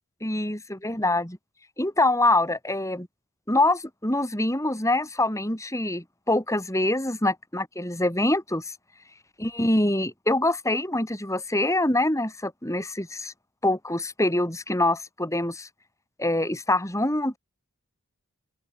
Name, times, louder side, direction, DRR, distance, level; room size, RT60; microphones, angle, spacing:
voice 1, 0.2-1.4 1.8-3.1 3.5-8.7 9.4-13.3 13.6-15.7 16.2-17.4, left 1 dB, 15° left, 6.9 m, -25 dB
open air
head